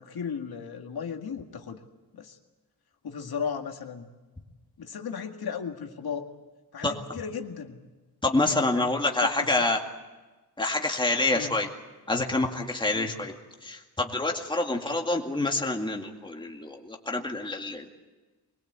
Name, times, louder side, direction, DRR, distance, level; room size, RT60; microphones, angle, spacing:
voice 1, 0.0-1.8 2.1-2.4 3.0-4.1 4.8-6.3 6.7-7.8 8.7-8.9 9.2-9.6 11.3-11.5 12.9-13.2 14.7-14.9, left 6 dB, 75° left, 4 dB, 2.1 m, -35 dB
voice 2, 8.2-9.8 10.6-11.7 12.1-13.3 13.6-17.9, left 2 dB, 10° left, 2 dB, 2.2 m, -27 dB
23.0 x 21.5 x 8.2 m, 1.2 s
wide cardioid pair, 150°, 38 cm